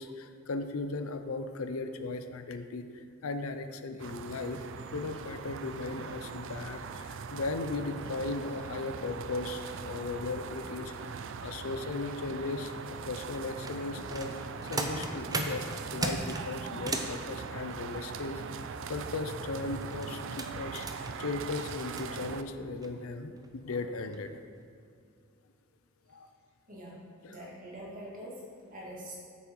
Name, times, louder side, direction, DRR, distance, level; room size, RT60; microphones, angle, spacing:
voice 1, 0.0-4.6 4.9-10.9 11.4-15.7 15.9-18.4 18.9-20.9 21.2-24.4 26.1-26.3 27.2-27.3, left 3 dB, 80° left, 8 dB, 0.6 m, -37 dB
sound 1, 4.0-22.4, right 5 dB, 65° right, 0.4 m, -41 dB
sound 2, 13.3-17.2 19.6-22.0 22.8-22.9 23.4-23.5 24.0-24.2 24.6-24.7, right 2 dB, 20° right, 0.6 m, -37 dB
voice 2, 26.7-29.2, right 1 dB, 40° right, -5 dB, 2.2 m, -45 dB
8.4 x 7.1 x 4.6 m, 2.4 s
head